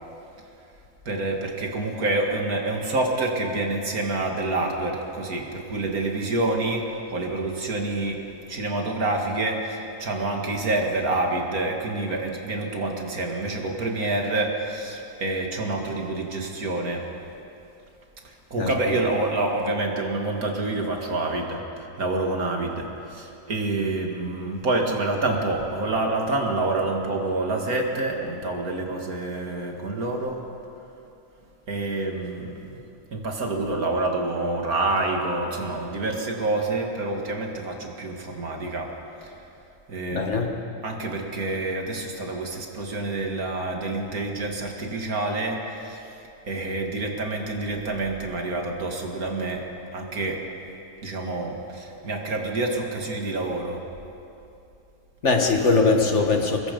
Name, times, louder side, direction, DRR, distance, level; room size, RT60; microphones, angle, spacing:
voice 1, 1.1-6.8 7.1-8.2 8.5-17.1 18.2-30.4 31.7-32.8 33.1-38.9 39.2-39.3 39.9-40.5 40.8-46.0 46.5-49.6 49.9-50.4 51.0-53.8, right 2 dB, 70° right, 1 dB, 2.6 m, -27 dB
voice 2, 40.1-40.6 55.2-56.7, left 4 dB, 50° left, 3 dB, 1.9 m, -21 dB
25.0 x 21.0 x 5.4 m, 2.8 s
omnidirectional pair, 1.6 m